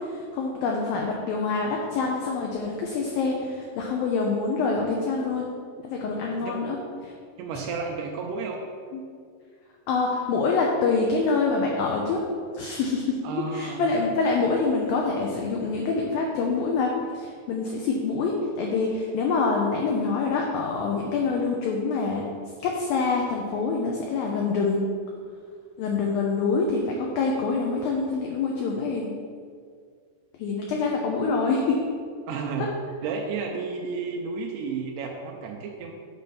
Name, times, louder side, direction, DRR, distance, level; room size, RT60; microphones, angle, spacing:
voice 1, 0.1-5.5 5.8-6.8 8.9-9.0 9.9-12.2 12.5-22.3 22.6-24.8 25.8-29.1 30.4-31.8 32.6-32.7, left 4 dB, 85° left, 0 dB, 2.0 m, -26 dB
voice 2, 7.4-8.6 13.2-13.8 32.3-32.7 33.0-35.9, right 5 dB, 80° right, 1 dB, 2.5 m, -32 dB
9.1 x 4.2 x 5.4 m, 2.1 s
omnidirectional pair, 5.0 m